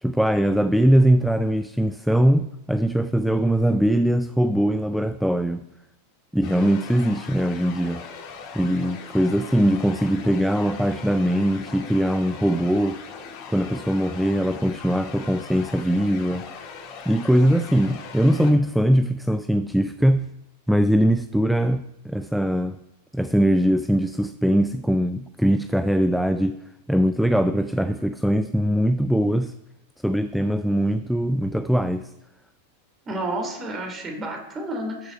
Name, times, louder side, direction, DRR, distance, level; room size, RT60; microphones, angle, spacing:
voice 1, 0.0-5.6 6.3-8.0 8.5-13.0 13.5-16.4 17.1-20.3 20.7-22.8 23.1-26.6 26.9-29.5 30.0-32.1, equal, ahead, 12 dB, 0.4 m, -21 dB
sound 1, 6.4-18.5, left 6 dB, 40° left, 2.2 m, -40 dB
voice 2, 33.1-35.1, right 1 dB, 20° right, 2 dB, 2.9 m, -30 dB
13.0 x 6.5 x 4.5 m, 0.88 s
figure-of-eight pair, 90°, 0 cm